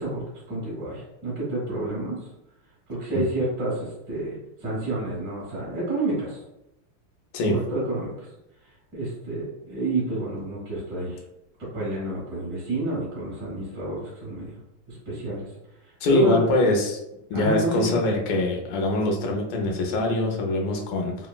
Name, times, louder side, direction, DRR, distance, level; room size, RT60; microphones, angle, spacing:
voice 1, 0.0-2.3 2.9-6.4 7.4-8.2 8.9-11.2 11.6-14.6 14.9-15.5 16.1-16.4 17.3-18.0, right 1 dB, 45° right, -7 dB, 1.2 m, -29 dB
voice 2, 16.0-17.0 17.3-21.2, left 2 dB, 80° left, 0 dB, 1.5 m, -23 dB
3.8 x 2.0 x 2.3 m, 0.88 s
omnidirectional pair, 2.4 m